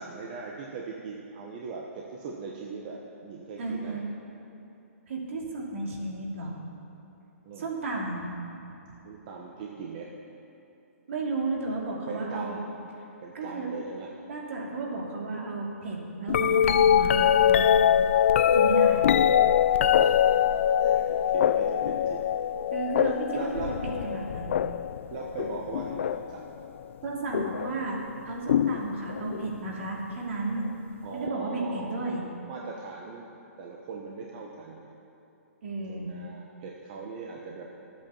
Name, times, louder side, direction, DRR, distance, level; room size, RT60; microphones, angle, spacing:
voice 1, 0.0-4.0 7.4-7.7 9.0-10.1 12.1-12.6 13.2-14.1 20.0-20.4 20.8-22.3 23.3-23.7 25.1-26.5 31.0-32.1 32.4-33.3 33.6-34.9 35.9-37.7, right 4 dB, 35° right, -1 dB, 1.1 m, -40 dB
voice 2, 3.6-4.0 5.1-6.6 7.6-8.2 11.1-12.6 13.3-13.7 14.3-17.7 18.0-18.1 18.5-19.1 22.7-24.6 27.0-28.0 28.2-30.7 31.1-32.3 35.6-36.1, right 3 dB, 60° right, -2 dB, 2.8 m, -33 dB
sound 1, 16.3-26.4 27.3-27.7 28.5-29.5 31.3-31.4, left 9 dB, 55° left, 0.3 m, -23 dB
12.5 x 8.5 x 7.1 m, 2.8 s
hypercardioid pair, 165°, 8 cm